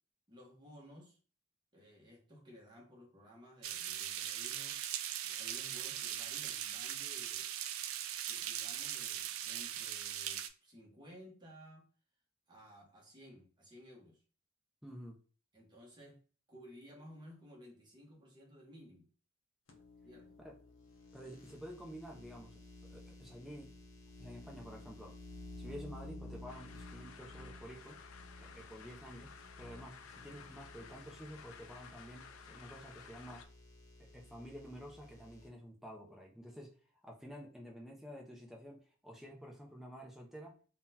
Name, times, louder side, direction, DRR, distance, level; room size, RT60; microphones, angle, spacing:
voice 1, 0.3-1.2 1.7-4.8 5.2-7.5 8.2-11.9 12.5-14.2 15.5-16.2 16.5-19.1 20.0-20.4, equal, 20° right, -1 dB, 0.9 m, -56 dB
sound 1, 3.6-10.5, right 11 dB, 80° right, 0.3 m, -40 dB
voice 2, 14.8-15.2 20.4-20.6 21.1-23.7 24.2-25.2 25.5-28.0 28.4-33.5 34.0-36.8 37.0-40.6, equal, ahead, -1 dB, 0.5 m, -50 dB
sound 2, 19.7-35.5, left 1 dB, 65° left, 0.8 m, -54 dB
sound 3, 26.5-33.5, left 7 dB, 85° left, 0.4 m, -55 dB
3.6 x 2.2 x 2.7 m, 0.40 s
head